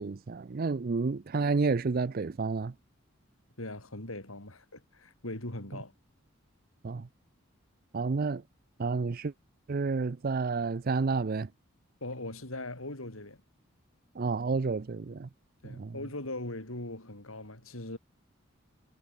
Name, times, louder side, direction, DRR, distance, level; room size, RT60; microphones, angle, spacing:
voice 1, 0.0-2.7 6.8-7.1 7.9-8.4 8.8-9.3 9.7-11.5 14.2-15.3 15.6-16.0, right 4 dB, 45° right, 0.5 m, -30 dB
voice 2, 3.6-5.9 12.0-13.4 15.6-18.0, left 2 dB, 85° left, 5.6 m, -40 dB
head